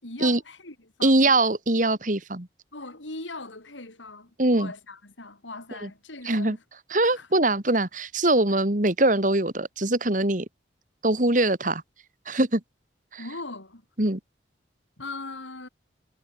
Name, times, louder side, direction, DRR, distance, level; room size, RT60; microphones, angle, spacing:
voice 1, 0.0-1.3 2.7-6.6 7.0-7.3 8.5-8.6 13.2-13.8 15.0-15.7, left 2 dB, 90° left, 5.7 m, -40 dB
voice 2, 1.0-2.5 4.4-4.7 5.8-5.9 6.3-6.6 6.9-10.5 11.0-11.8 12.3-12.6 13.1-13.2 14.0-14.2, right 2 dB, 45° right, 2.1 m, -22 dB
head